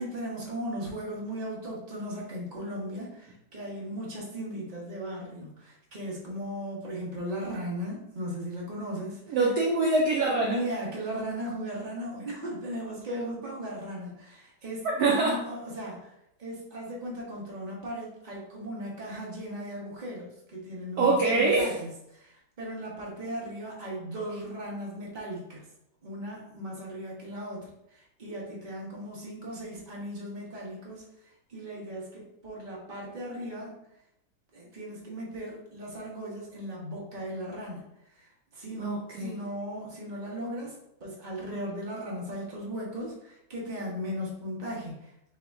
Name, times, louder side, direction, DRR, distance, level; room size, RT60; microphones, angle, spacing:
voice 1, 0.0-9.4 10.4-14.9 15.2-16.1 16.4-25.6 26.0-31.0 31.5-33.7 34.5-37.8 38.1-40.7 41.0-45.1, equal, 30° right, -4 dB, 1.0 m, -37 dB
voice 2, 9.3-10.6 14.8-15.4 21.0-21.8 38.8-39.4, right 3 dB, 70° right, -1 dB, 0.9 m, -24 dB
4.8 x 2.9 x 3.6 m, 0.81 s
omnidirectional pair, 2.3 m